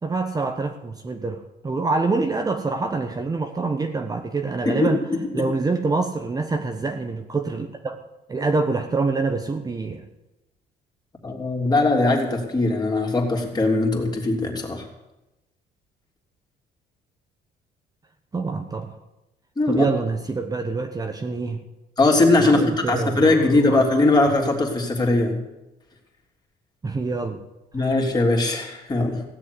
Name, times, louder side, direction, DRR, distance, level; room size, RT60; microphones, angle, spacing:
voice 1, 0.0-5.0 5.3-8.0 8.3-10.1 18.3-19.0 19.7-21.6 22.4-23.8 26.8-27.4 27.8-27.9, right 3 dB, 20° right, 5 dB, 1.1 m, -26 dB
voice 2, 11.2-14.8 19.6-19.9 22.0-25.4 27.7-29.2, left 2 dB, 25° left, 1 dB, 3.4 m, -20 dB
16.5 x 7.4 x 9.7 m, 0.98 s
cardioid pair, 110°, 17 cm